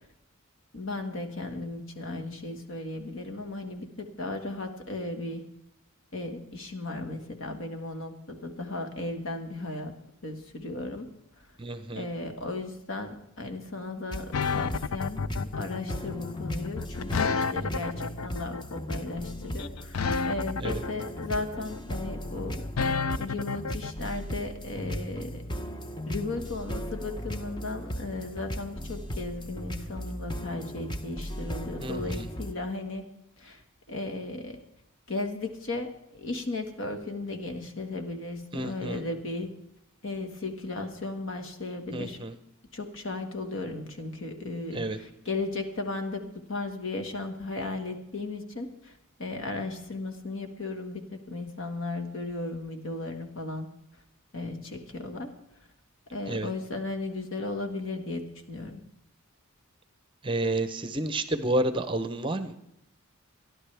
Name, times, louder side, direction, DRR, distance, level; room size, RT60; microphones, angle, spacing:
voice 1, 0.7-5.4 6.1-9.9 10.2-11.1 11.4-11.5 11.9-22.9 23.2-25.4 26.1-33.0 33.4-33.6 33.9-34.6 35.1-39.5 40.0-42.2 42.7-53.7 54.3-55.4 56.1-58.8, left 2 dB, 60° left, 5 dB, 1.6 m, -36 dB
voice 2, 11.6-12.1 20.6-20.8 31.8-32.3 38.5-39.0 41.9-42.3 44.7-45.0 56.3-56.5 60.2-62.5, right 2 dB, 20° right, 10 dB, 0.7 m, -30 dB
sound 1, 14.1-32.5, equal, 20° left, 0.7 m, -37 dB
sound 2, 14.3-23.9, left 5 dB, 75° left, 0.5 m, -31 dB
27.5 x 11.0 x 3.4 m, 0.78 s
head